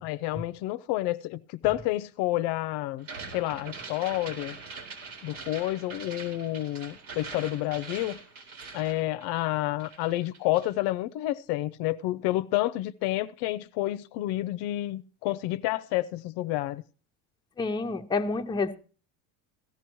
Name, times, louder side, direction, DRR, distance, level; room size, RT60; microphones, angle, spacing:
voice 1, 0.0-3.1 3.3-4.6 5.2-8.2 8.7-16.8, left 16 dB, 65° left, 0.6 m, -29 dB
sound 1, 3.0-9.5 9.8-10.8, right 4 dB, 75° right, 4.1 m, -43 dB
voice 2, 17.6-18.8, left 3 dB, 10° left, 0.7 m, -28 dB
16.5 x 12.5 x 3.0 m
cardioid pair, 125°, 43 cm